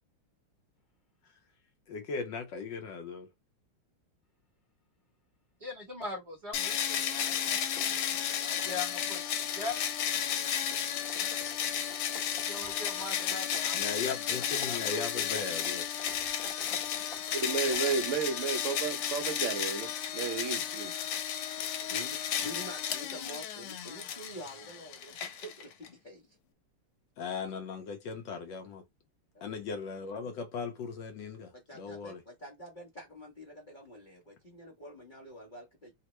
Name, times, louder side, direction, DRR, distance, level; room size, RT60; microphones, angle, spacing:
voice 1, 1.9-3.3 13.7-15.8 27.2-28.8 29.4-32.2, left 5 dB, 75° left, 1.1 m, -38 dB
voice 2, 5.6-7.4 8.3-9.2 9.5-9.8 12.3-13.8 14.6-15.4, left 3 dB, 25° right, 0.8 m, -41 dB
sound 1, 6.5-25.9, left 9 dB, 90° left, 1.5 m, -33 dB
sound 2, 7.1-8.9 9.2-9.8 10.1-18.1, left 3 dB, 40° left, 1.0 m, -52 dB
voice 3, 17.3-20.9, right 5 dB, 70° right, 0.7 m, -32 dB
voice 4, 21.9-26.4 29.3-29.5 31.5-35.9, equal, 55° left, 0.5 m, -47 dB
3.5 x 2.0 x 2.9 m
omnidirectional pair, 2.4 m